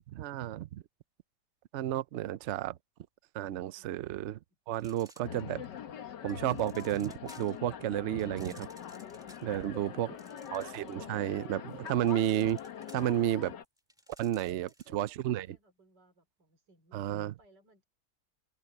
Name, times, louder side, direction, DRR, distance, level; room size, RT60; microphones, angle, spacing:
voice 1, 0.1-0.7 1.7-2.8 3.3-4.4 4.7-5.6 6.2-8.7 9.4-10.1 10.5-12.6 12.9-13.5 14.2-15.6 16.9-17.3, right 12 dB, 70° right, 0.6 m, -32 dB
sound 1, 4.7-5.8 6.3-7.7 8.2-11.1 11.4-15.0, right 1 dB, ahead, 1.8 m, -58 dB
sound 2, 5.2-13.7, left 8 dB, 85° left, 1.9 m, -44 dB
voice 2, 9.2-10.5 11.7-12.1 14.3-15.0 15.3-17.8, right 1 dB, 90° right, 4.0 m, -63 dB
omnidirectional pair, 1.8 m